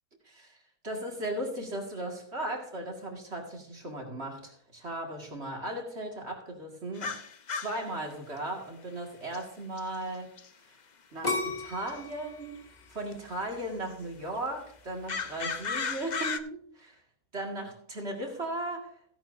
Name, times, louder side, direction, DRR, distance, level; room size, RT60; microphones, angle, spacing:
voice 1, 0.2-0.6 0.8-7.2 7.5-10.3 11.1-12.6 12.9-17.0 17.3-18.9, right 1 dB, 40° right, 2.2 m, -37 dB
sound 1, 7.0-7.8 9.3-9.4 9.8-9.9 10.4-10.5 11.9-12.0 13.1-13.2 15.1-16.4, left 5 dB, 65° left, 0.4 m, -34 dB
sound 2, 11.2-14.1 14.7-15.1, left 2 dB, 25° left, 2.4 m, -35 dB
16.0 x 10.5 x 2.7 m
omnidirectional pair, 1.8 m